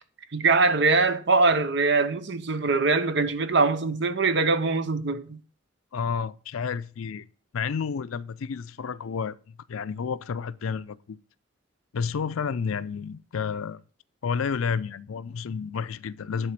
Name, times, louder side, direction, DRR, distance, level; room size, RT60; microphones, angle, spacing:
voice 1, 0.3-5.4, right 3 dB, 55° right, 0.7 m, -22 dB
voice 2, 5.9-7.3 7.5-11.2 11.9-13.8 14.2-16.5, left 6 dB, 85° left, 0.4 m, -30 dB
10.5 x 4.1 x 5.9 m
head